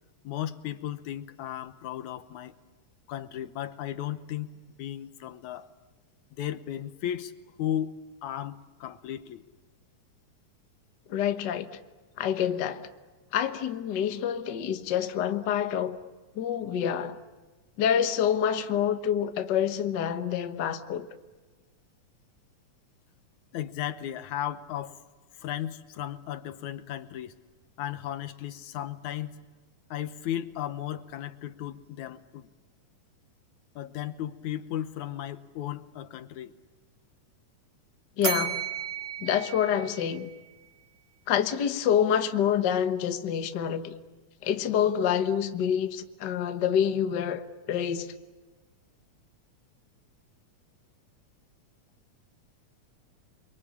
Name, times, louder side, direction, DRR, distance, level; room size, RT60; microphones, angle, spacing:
voice 1, 0.2-2.5 3.1-4.5 4.8-5.7 6.3-7.3 7.6-7.9 8.2-9.4 23.5-25.0 25.3-27.4 27.8-29.4 29.9-32.5 33.8-36.6, left 11 dB, 75° left, 2.4 m, -35 dB
voice 2, 11.1-11.7 12.2-12.9 13.3-16.0 16.3-17.2 17.8-21.1 38.2-38.6 39.2-40.3 41.3-43.9 44.4-48.1, left 9 dB, 50° left, 1.4 m, -27 dB
Bell, 38.2-40.5, right 7 dB, 60° right, 0.6 m, -34 dB
29.5 x 23.0 x 8.6 m
omnidirectional pair, 3.4 m